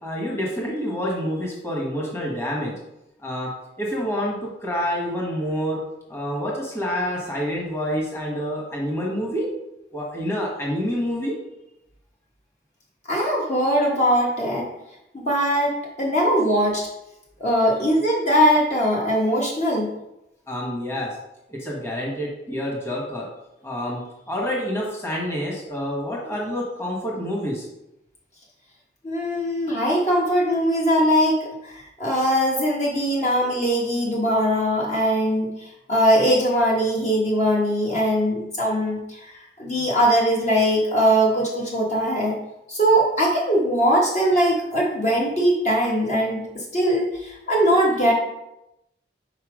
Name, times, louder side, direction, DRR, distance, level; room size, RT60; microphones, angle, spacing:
voice 1, 0.0-2.7 3.2-3.5 3.8-5.8 6.1-9.5 9.9-11.4 20.5-21.1 21.5-23.3 23.6-27.7, equal, 15° left, -3 dB, 1.4 m, -27 dB
voice 2, 13.1-14.7 15.1-16.9 17.4-19.9 29.0-42.4 42.7-48.1, equal, 40° left, -3 dB, 1.3 m, -21 dB
5.6 x 4.6 x 5.0 m, 0.88 s
head